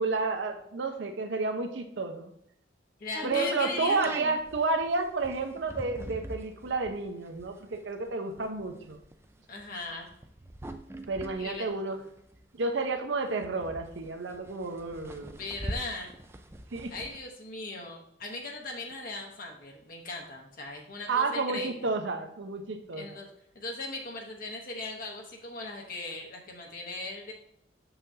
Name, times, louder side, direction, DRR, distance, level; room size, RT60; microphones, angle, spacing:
voice 1, 0.0-2.3 3.2-9.0 11.1-12.0 12.5-15.4 16.7-16.9 21.1-23.1, right 3 dB, 70° right, 6 dB, 0.7 m, -31 dB
voice 2, 3.0-4.2 9.5-10.1 11.4-11.7 15.2-16.1 16.9-21.9 23.0-23.3 23.5-27.3, left 2 dB, 50° left, 1 dB, 0.9 m, -38 dB
sound 1, 3.1-12.6 13.0-13.1 13.2-17.2, right 1 dB, 15° right, 0.4 m, -42 dB
6.9 x 5.7 x 2.7 m, 0.73 s
head